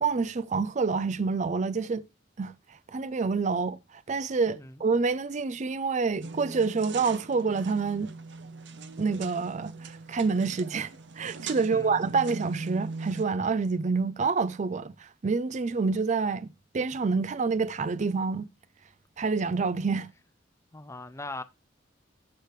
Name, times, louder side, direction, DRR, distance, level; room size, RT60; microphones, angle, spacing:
voice 1, 0.0-2.0 2.4-2.5 2.9-3.8 4.1-8.1 9.0-16.5 16.7-18.5 19.2-20.1, right 4 dB, 40° right, 0.5 m, -27 dB
sound 1, 6.2-13.2, right 4 dB, 65° right, 0.8 m, -40 dB
voice 2, 11.5-12.0 20.7-21.4, left 2 dB, 15° left, 0.6 m, -40 dB
13.0 x 4.8 x 3.2 m
head